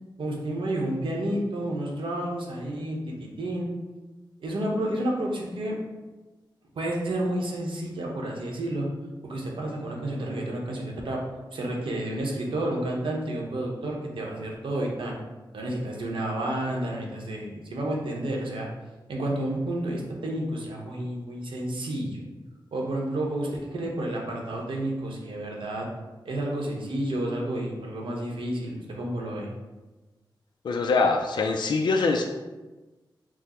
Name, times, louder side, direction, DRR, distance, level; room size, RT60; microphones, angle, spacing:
voice 1, 0.2-3.7 4.4-5.8 6.7-8.9 9.2-11.2 11.5-15.2 15.5-18.7 19.1-22.3 22.7-25.9 26.2-29.5, right 1 dB, 80° right, -1 dB, 0.9 m, -30 dB
voice 2, 30.6-32.2, left 4 dB, 65° left, 3 dB, 0.3 m, -23 dB
4.9 x 2.0 x 4.2 m, 1.2 s
wide cardioid pair, 105°, 8 cm